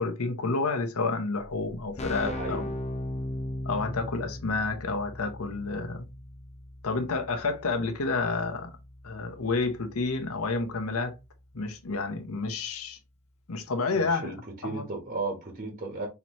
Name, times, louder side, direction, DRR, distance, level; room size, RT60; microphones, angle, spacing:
voice 1, 0.0-2.7 3.6-6.0 6.8-8.7 9.0-11.1 11.5-13.0 13.5-14.3 14.6-14.8, left 3 dB, 75° left, 0.8 m, -30 dB
Keyboard (musical), 1.4-1.5 1.7-12.3, left 1 dB, 30° left, 0.6 m, -39 dB
voice 2, 2.2-2.7 13.9-16.1, right 3 dB, 35° right, 1.2 m, -35 dB
5.7 x 2.9 x 3.0 m
head